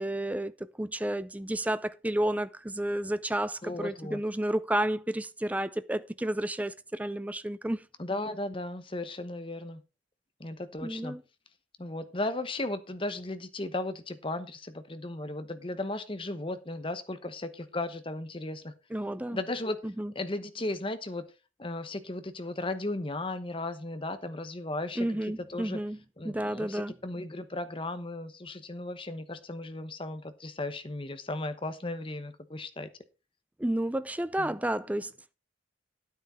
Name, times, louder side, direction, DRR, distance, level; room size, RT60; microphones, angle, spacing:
voice 1, 0.0-7.9 10.8-11.2 18.9-19.4 19.8-20.1 25.0-26.0 26.2-26.9 33.6-35.3, right 1 dB, 10° right, 0.4 m, -31 dB
voice 2, 3.6-4.2 8.0-9.8 10.4-11.2 11.8-18.7 19.3-19.8 20.1-21.3 21.6-25.1 25.5-25.8 26.2-32.9 34.4-34.6, left 2 dB, 25° left, 0.9 m, -36 dB
10.0 x 9.2 x 4.3 m
head